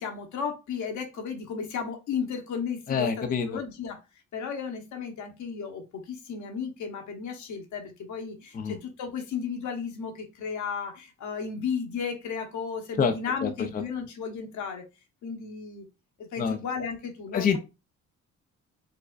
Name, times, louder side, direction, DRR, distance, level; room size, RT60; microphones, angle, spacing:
voice 1, 0.0-4.0 4.3-14.8 15.2-15.9 16.2-17.6, left 6 dB, 75° left, 1.1 m, -34 dB
voice 2, 2.9-3.6 8.5-8.8 13.0-13.1 13.4-13.5 16.4-16.6 17.3-17.6, left 6 dB, 30° left, 0.4 m, -26 dB
4.8 x 2.1 x 2.4 m
cardioid pair, 90°, 30 cm